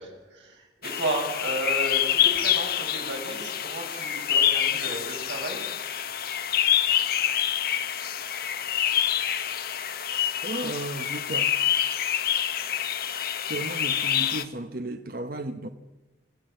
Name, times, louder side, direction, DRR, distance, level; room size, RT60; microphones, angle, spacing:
voice 1, 0.0-5.7, right 2 dB, 80° right, 7.1 m, -33 dB
sound 1, 0.8-14.4, left 10 dB, 55° left, 1.2 m, -26 dB
voice 2, 10.4-11.5 13.5-15.7, right 2 dB, 50° right, 0.9 m, -34 dB
25.0 x 15.5 x 7.8 m
head